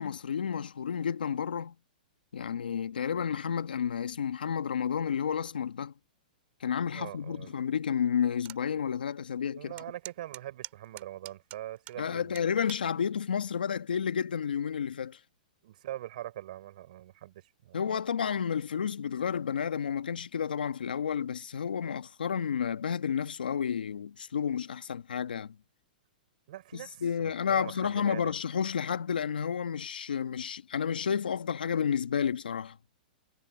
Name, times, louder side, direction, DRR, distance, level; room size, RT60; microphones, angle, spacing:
voice 1, 0.0-1.7 2.3-5.9 6.6-9.7 12.0-15.2 17.7-25.6 26.7-32.8, left 7 dB, 90° left, 1.3 m, -31 dB
voice 2, 6.9-7.5 9.6-12.5 15.6-17.8 26.5-28.3, right 14 dB, 60° right, 6.1 m, -43 dB
sound 1, 8.4-8.6 9.1-9.2 9.8-12.0 12.4-12.9 13.6-13.9, right 17 dB, 35° right, 3.1 m, -45 dB
hypercardioid pair, 130°, 5 cm